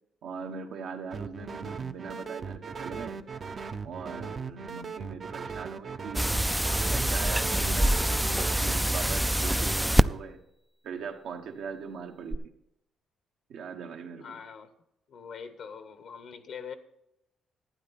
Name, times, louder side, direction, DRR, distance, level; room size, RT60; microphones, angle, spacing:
voice 1, 0.2-3.2 3.8-6.3 6.9-10.4 10.8-12.5 13.5-14.4, right 5 dB, 80° right, 4 dB, 1.3 m, -40 dB
sound 1, 1.1-8.6, right 5 dB, 45° right, 0.6 m, -38 dB
sound 2, 6.1-10.0 12.3-12.4, right 1 dB, 5° right, 0.3 m, -25 dB
voice 2, 14.2-14.7 15.1-16.7, left 6 dB, 65° left, 10 dB, 1.0 m, -43 dB
11.5 x 9.2 x 4.1 m, 0.82 s
cardioid pair, 90°, 0 cm